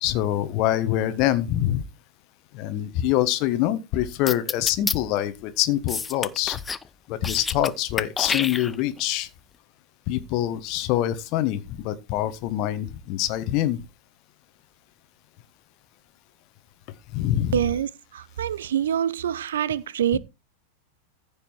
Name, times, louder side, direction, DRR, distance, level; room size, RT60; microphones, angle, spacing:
voice 1, 0.0-1.8 2.5-6.6 7.1-9.3 10.1-13.8 17.1-17.6 20.1-20.2, left 13 dB, 40° left, 1.4 m, -25 dB
sound 1, 4.3-5.0 5.9-6.9 7.1-7.7 8.0-9.0, left 5 dB, 15° left, 0.6 m, -28 dB
voice 2, 17.5-20.2, right 9 dB, 60° right, 0.7 m, -25 dB
15.0 x 5.3 x 4.6 m
figure-of-eight pair, 90°, 0 cm